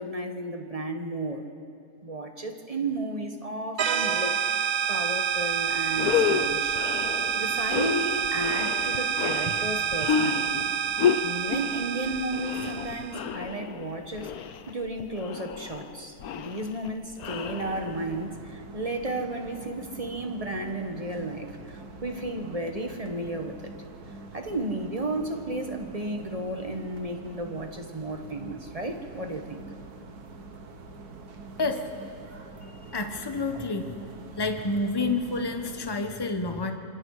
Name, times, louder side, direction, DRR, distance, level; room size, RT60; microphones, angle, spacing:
voice 1, 0.0-1.5 2.0-4.4 4.9-6.8 7.3-10.7 11.2-23.7 24.3-29.6, right 1 dB, 25° right, 5 dB, 1.4 m, -33 dB
sound 1, 3.8-13.2, right 8 dB, 60° right, 1.2 m, -28 dB
sound 2, 5.4-5.5 5.9-18.2, left 8 dB, 75° left, 1.3 m, -31 dB
sound 3, 17.2-35.9, right 3 dB, 85° right, 1.9 m, -45 dB
voice 2, 31.6-31.9 32.9-34.0 34.4-36.7, left 3 dB, 15° left, 5 dB, 1.2 m, -29 dB
26.5 x 26.0 x 4.9 m, 2.5 s
omnidirectional pair, 1.6 m